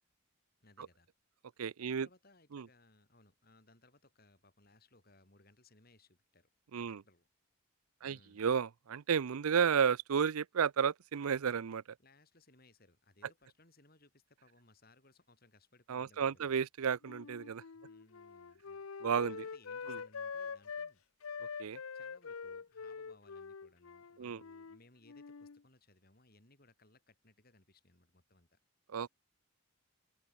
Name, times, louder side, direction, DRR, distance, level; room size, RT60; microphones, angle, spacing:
voice 1, 0.6-1.1 1.8-6.5 6.8-7.3 8.0-8.4 12.0-16.6 17.7-18.9 19.3-21.0 21.9-28.6, left 2 dB, 45° left, 4.4 m, -65 dB
voice 2, 1.6-2.1 2.5-2.7 6.7-7.0 8.0-11.8 15.9-17.6 19.0-19.4 19.9-20.0 21.6-21.8 24.2-24.4 28.9-29.1, right 7 dB, 85° right, 0.5 m, -32 dB
Wind instrument woodwind instrument, 17.0-20.9 21.2-24.8 25.0-25.6, left 5 dB, 80° left, 0.7 m, -45 dB
open air
head